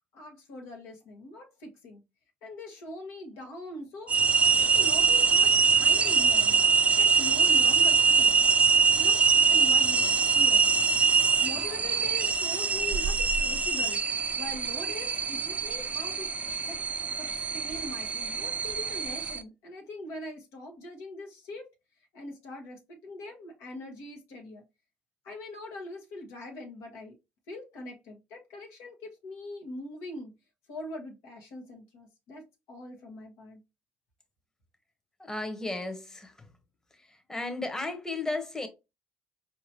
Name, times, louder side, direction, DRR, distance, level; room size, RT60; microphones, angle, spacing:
voice 1, 0.1-2.0 2.4-4.2 4.5-6.6 7.0-8.4 9.0-9.2 9.5-11.1 11.4-16.3 16.6-16.8 17.2-21.7 22.1-24.6 25.2-27.2 27.5-30.3 30.7-33.6, left 1 dB, 75° left, 1.1 m, -42 dB
sound 1, 4.1-19.4, right 5 dB, 30° right, 0.5 m, -24 dB
voice 2, 35.2-36.3 37.3-38.7, left 2 dB, 10° left, 1.0 m, -34 dB
4.6 x 2.8 x 2.9 m
supercardioid pair, 65°, 4 cm